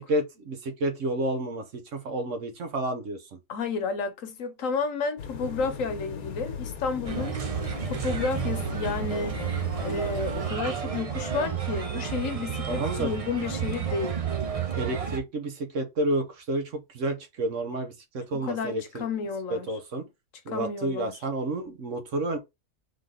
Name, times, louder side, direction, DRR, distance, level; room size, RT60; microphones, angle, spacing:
voice 1, 0.1-3.4 12.7-13.1 14.8-19.0 19.5-20.0 20.4-22.4, right 1 dB, 60° right, 1.3 m, -30 dB
voice 2, 3.5-7.4 7.8-9.5 9.8-14.2 18.3-19.7 20.5-21.1, left 4 dB, 70° left, 1.2 m, -31 dB
sound 1, 5.2-10.5, left 6 dB, 85° left, 1.4 m, -37 dB
Bird, 7.0-15.2, right 8 dB, 40° right, 0.5 m, -31 dB
3.9 x 3.3 x 3.8 m
omnidirectional pair, 1.5 m